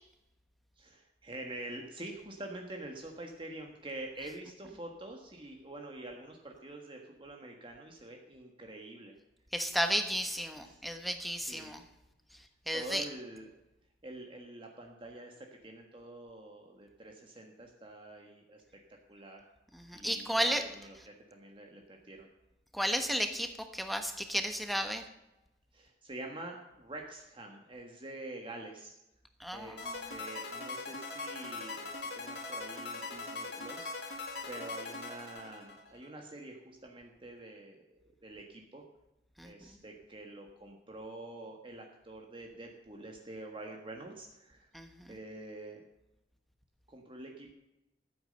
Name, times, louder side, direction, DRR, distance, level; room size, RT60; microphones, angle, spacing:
voice 1, 0.8-9.2 10.6-10.8 11.3-11.8 12.7-13.5 14.0-18.6 19.1-19.5 19.9-22.3 25.7-28.9 29.5-33.9 34.5-38.8 39.4-44.7 45.1-45.8 46.9-47.5, right 2 dB, 30° right, 2 dB, 1.5 m, -46 dB
voice 2, 9.5-11.8 12.7-13.0 19.7-20.6 22.7-25.0 29.4-30.1 39.4-39.5 44.7-45.2, equal, ahead, 6 dB, 1.2 m, -33 dB
sound 1, 29.8-36.1, left 3 dB, 85° left, 2.3 m, -41 dB
14.0 x 8.6 x 6.6 m, 0.93 s
head